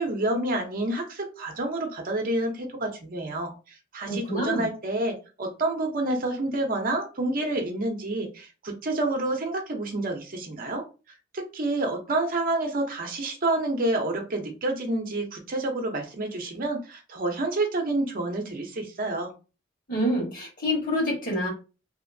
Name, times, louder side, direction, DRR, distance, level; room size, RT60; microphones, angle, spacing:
voice 1, 0.0-3.5 3.9-10.8 11.3-19.3, right 2 dB, 45° right, 3 dB, 0.7 m, -28 dB
voice 2, 4.0-4.7 19.9-21.5, equal, 45° left, -1 dB, 1.5 m, -27 dB
2.8 x 2.7 x 2.6 m, 0.32 s
head